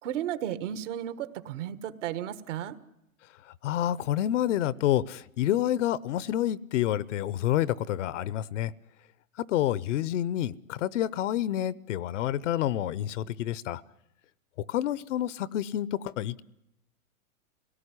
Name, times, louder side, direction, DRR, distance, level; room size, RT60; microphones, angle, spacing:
voice 1, 0.0-2.8, right 11 dB, 55° right, 1.6 m, -34 dB
voice 2, 3.6-8.7 9.5-13.8 14.7-16.4, left 12 dB, 55° left, 0.9 m, -28 dB
25.5 x 18.0 x 9.9 m
hypercardioid pair, 130°, 43 cm